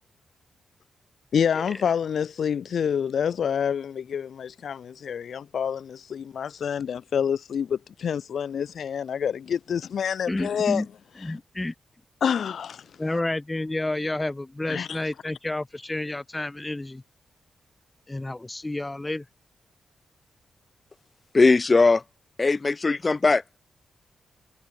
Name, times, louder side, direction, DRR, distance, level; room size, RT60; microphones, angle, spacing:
voice 1, 1.3-10.9 11.2-11.4 12.2-12.9 14.7-15.1, left 7 dB, 70° left, 2.4 m, -27 dB
voice 2, 10.3-10.9 11.2-11.7 13.0-17.0 18.1-19.2, left 2 dB, 20° left, 2.9 m, -30 dB
voice 3, 21.3-22.0 22.4-23.6, left 3 dB, 35° left, 7.8 m, -19 dB
cardioid pair, 65°, 0 cm